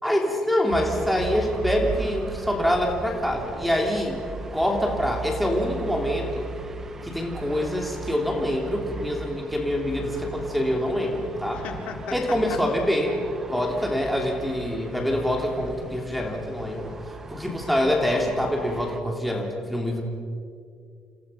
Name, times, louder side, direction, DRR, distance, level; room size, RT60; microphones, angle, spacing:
voice 1, 0.0-4.2 4.5-6.5 7.0-11.6 12.1-13.2 13.5-16.9 17.3-20.0, left 1 dB, ahead, 1 dB, 3.1 m, -25 dB
sound 1, 0.7-19.0, right 3 dB, 20° right, 1.4 m, -37 dB
voice 2, 11.5-12.4, left 6 dB, 70° left, 3 dB, 4.0 m, -36 dB
30.0 x 28.0 x 5.7 m, 2.3 s
cardioid pair, 180°, 2 cm